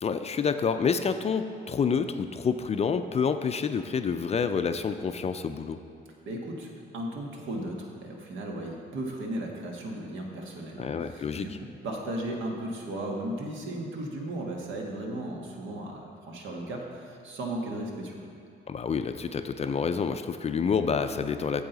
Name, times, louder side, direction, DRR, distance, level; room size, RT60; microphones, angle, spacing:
voice 1, 0.0-5.8 10.8-11.5 18.7-21.7, left 6 dB, 30° left, 9 dB, 0.4 m, -28 dB
voice 2, 6.3-18.3, right 1 dB, 75° right, 0 dB, 1.4 m, -36 dB
8.7 x 7.4 x 4.0 m, 2.4 s
cardioid pair, 90°, 20 cm